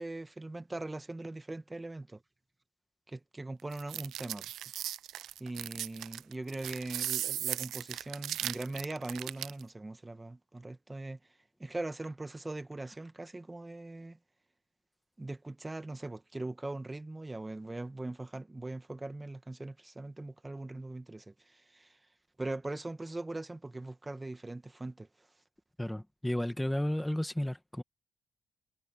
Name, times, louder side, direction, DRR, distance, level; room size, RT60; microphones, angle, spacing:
voice 1, 0.0-2.2 3.1-4.5 5.4-11.2 11.6-14.2 15.2-22.0 22.4-25.1, right 2 dB, 15° right, 1.5 m, -41 dB
sound 1, 3.7-9.6, right 12 dB, 80° right, 0.5 m, -37 dB
voice 2, 25.8-27.8, left 1 dB, 5° left, 1.6 m, -33 dB
cardioid pair, 90°, 0 cm